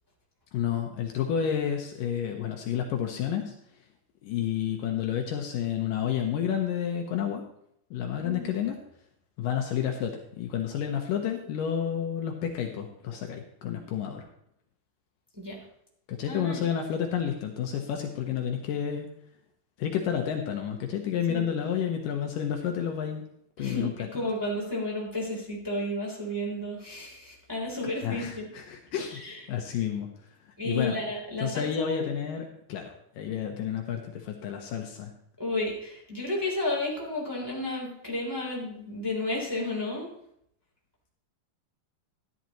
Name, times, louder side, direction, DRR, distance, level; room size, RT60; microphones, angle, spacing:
voice 1, 0.5-3.5 4.2-7.4 7.9-8.8 9.4-14.3 16.1-19.1 19.8-23.2 23.6-24.1 28.0-29.2 29.5-30.1 30.4-31.0 31.4-35.1, left 8 dB, 75° left, 3 dB, 2.4 m, -30 dB
voice 2, 8.2-8.5 15.4-15.6 16.3-16.7 21.3-21.5 23.6-28.5 29.2-29.4 30.6-32.0 35.4-40.1, left 1 dB, 5° right, -3 dB, 2.7 m, -32 dB
13.0 x 11.0 x 3.1 m, 0.71 s
omnidirectional pair, 4.3 m